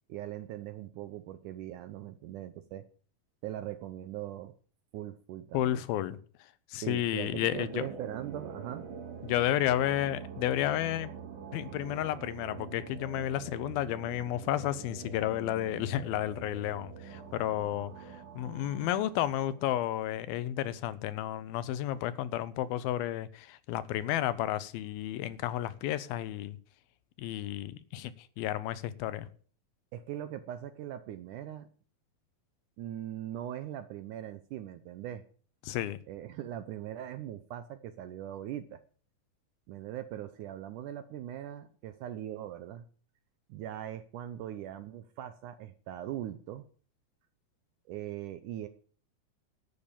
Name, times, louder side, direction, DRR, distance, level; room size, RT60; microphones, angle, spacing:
voice 1, 0.1-2.8 3.4-4.5 4.9-5.8 6.8-8.9 29.9-31.7 32.8-35.2 36.1-38.8 39.7-42.8 43.5-46.6 47.9-48.7, right 12 dB, 75° right, 1.9 m, -40 dB
voice 2, 5.5-6.2 6.7-7.9 9.2-11.1 11.5-26.6 27.2-29.3 35.6-36.0, left 12 dB, 80° left, 2.6 m, -32 dB
sound 1, 7.2-20.4, right 6 dB, 60° right, 3.8 m, -46 dB
12.0 x 8.5 x 7.0 m
omnidirectional pair, 4.3 m